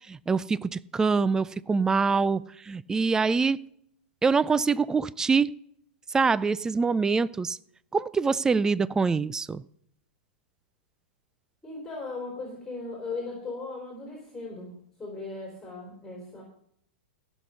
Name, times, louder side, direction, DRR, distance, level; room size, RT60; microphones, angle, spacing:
voice 1, 0.1-3.6 4.2-5.5 6.1-7.6 7.9-9.6, right 4 dB, 10° right, 19 dB, 0.3 m, -25 dB
voice 2, 11.6-16.4, left 3 dB, 10° left, -1 dB, 3.9 m, -38 dB
16.0 x 6.4 x 5.6 m, 0.70 s
hypercardioid pair, 115°, 6 cm